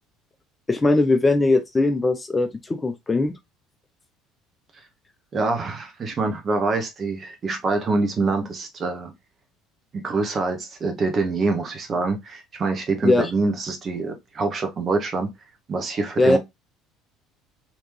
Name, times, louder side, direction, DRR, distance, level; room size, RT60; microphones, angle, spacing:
voice 1, 0.7-3.4 13.0-13.3 16.2-16.4, left 2 dB, 20° left, 0.5 m, -20 dB
voice 2, 5.3-9.1 9.9-15.3 15.7-16.4, right 3 dB, 35° right, 1.1 m, -25 dB
3.2 x 2.9 x 3.1 m
figure-of-eight pair, 60°, 0 cm